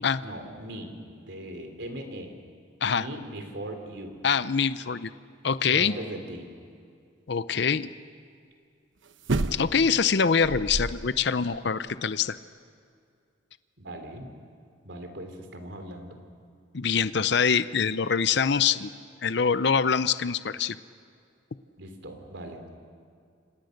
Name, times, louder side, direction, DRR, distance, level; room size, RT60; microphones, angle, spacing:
voice 1, 0.2-2.4 2.9-4.2 5.7-6.5 13.8-14.4 14.8-16.2 21.8-22.7, right 1 dB, 65° right, 5 dB, 3.6 m, -39 dB
voice 2, 4.2-5.1 5.4-5.9 7.3-7.9 9.5-12.4 16.7-18.9 19.2-20.8, left 6 dB, 60° left, 14 dB, 0.6 m, -24 dB
sound 1, 9.2-10.0 10.4-11.2 11.6-11.7, right 2 dB, 85° right, 1.0 m, -29 dB
30.0 x 26.5 x 6.6 m, 2.3 s
head